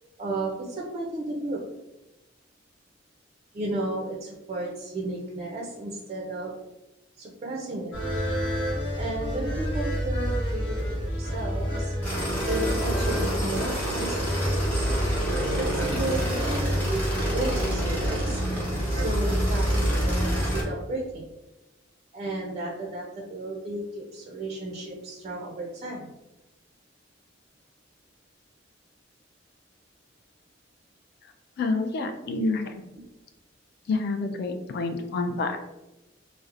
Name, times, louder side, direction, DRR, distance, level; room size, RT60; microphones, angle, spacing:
voice 1, 0.2-1.6 3.5-6.5 7.2-8.0 9.0-11.9 12.5-14.5 15.5-18.4 18.9-21.4 22.1-26.1, right 2 dB, 35° right, -2 dB, 0.3 m, -33 dB
sound 1, 7.9-20.6, equal, 80° left, 0.9 m, -28 dB
sound 2, 12.0-20.6, equal, 10° left, 0.8 m, -29 dB
voice 2, 31.6-32.8 33.9-35.6, left 3 dB, 60° left, 6 dB, 0.3 m, -28 dB
2.7 x 2.0 x 2.4 m, 0.99 s
head